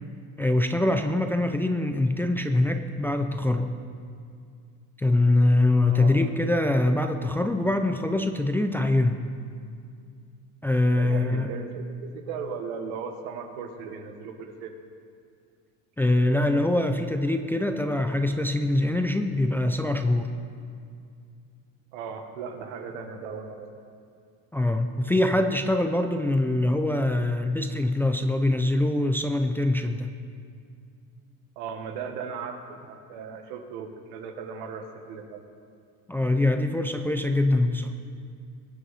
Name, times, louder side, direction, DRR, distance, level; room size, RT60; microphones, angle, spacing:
voice 1, 0.4-3.7 5.0-9.2 10.6-11.5 16.0-20.3 24.5-30.1 36.1-37.9, left 2 dB, 5° left, 6 dB, 0.3 m, -23 dB
voice 2, 10.9-14.7 21.9-23.7 31.6-35.4, right 6 dB, 90° right, 5 dB, 1.6 m, -37 dB
21.5 x 8.4 x 4.2 m, 2.3 s
cardioid pair, 140°, 38 cm